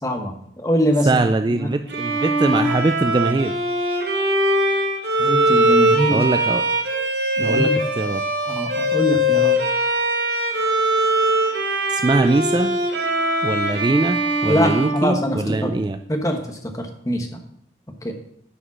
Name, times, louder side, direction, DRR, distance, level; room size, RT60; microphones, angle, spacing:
voice 1, 0.0-1.2 1.5-1.7 5.2-6.2 7.4-7.7 8.5-9.6 14.5-15.7 16.1-17.3 18.0-18.1, equal, 20° left, 4 dB, 1.1 m, -23 dB
voice 2, 1.1-3.6 6.1-6.6 7.4-8.2 11.9-12.8 13.4-16.0, right 2 dB, 25° right, 9 dB, 0.3 m, -22 dB
Bowed string instrument, 1.9-15.8, right 1 dB, 70° right, 1.5 m, -21 dB
9.8 x 5.2 x 6.0 m, 0.73 s
head